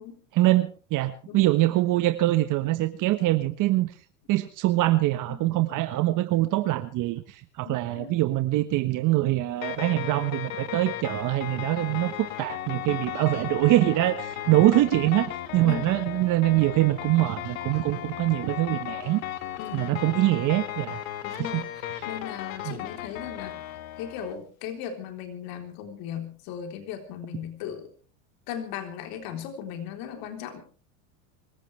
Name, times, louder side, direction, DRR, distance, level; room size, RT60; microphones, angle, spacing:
voice 1, 0.3-3.9 4.3-19.2 19.7-21.0 21.3-21.6 22.6-22.8, right 16 dB, 50° right, 9 dB, 1.4 m, -24 dB
voice 2, 7.6-8.1 15.6-16.0 19.6-20.0 21.2-23.6 24.0-27.9 28.5-30.6, left 9 dB, 60° left, 5 dB, 3.8 m, -37 dB
sound 1, 9.6-24.3, left 12 dB, 80° left, 2.0 m, -36 dB
25.0 x 15.5 x 3.3 m, 0.38 s
supercardioid pair, 105°, 40 cm